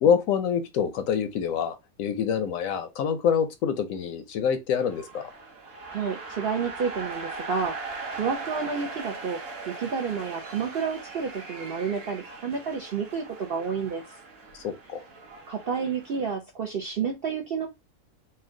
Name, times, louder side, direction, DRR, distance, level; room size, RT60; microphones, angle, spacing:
voice 1, 0.0-5.3 14.5-15.0, left 7 dB, 70° left, 0.9 m, -26 dB
sound 1, 4.8-16.3, right 3 dB, 45° right, 1.1 m, -40 dB
voice 2, 5.9-9.4 9.7-14.1 15.5-17.7, right 6 dB, 60° right, 0.6 m, -30 dB
4.3 x 2.2 x 3.7 m
omnidirectional pair, 1.7 m